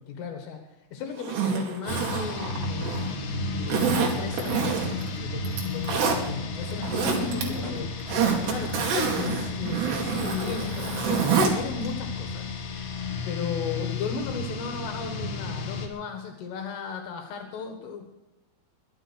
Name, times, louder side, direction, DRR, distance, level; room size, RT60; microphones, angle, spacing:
voice 1, 0.0-3.2 3.5-7.9 8.5-12.5 13.3-18.2, left 5 dB, 80° left, 4 dB, 4.1 m, -35 dB
Zipper (clothing), 1.2-3.1 3.7-5.1 5.5-6.2 6.7-7.4 7.8-11.5 11.9-12.0, right 6 dB, 60° right, 4.2 m, -27 dB
sound 1, 1.9-15.9, left 3 dB, 55° left, 3.0 m, -33 dB
sound 2, 2.3-10.5, left 1 dB, 15° left, 0.9 m, -43 dB
22.0 x 9.3 x 6.3 m, 0.94 s
omnidirectional pair, 5.8 m